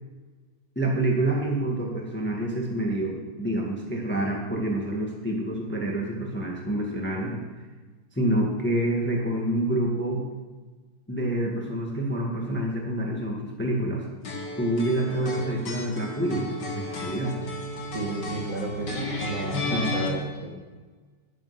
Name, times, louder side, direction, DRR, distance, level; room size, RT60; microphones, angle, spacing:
voice 1, 0.7-7.4 8.1-10.2 11.1-14.0 14.6-17.3 19.7-19.9, right 1 dB, 5° left, -1 dB, 1.6 m, -27 dB
sound 1, 14.2-20.1, left 1 dB, 55° left, 2.5 m, -33 dB
voice 2, 17.9-20.5, right 1 dB, 40° right, -1 dB, 2.3 m, -33 dB
11.0 x 10.0 x 5.9 m, 1.3 s
omnidirectional pair, 2.3 m